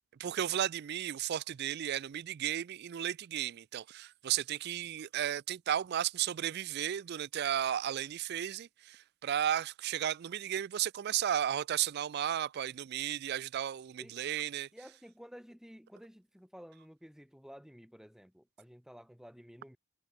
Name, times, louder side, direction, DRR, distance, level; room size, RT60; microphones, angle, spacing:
voice 1, 0.2-14.7, right 10 dB, 50° right, 0.3 m, -34 dB
voice 2, 14.7-19.8, equal, ahead, 4.3 m, -53 dB
head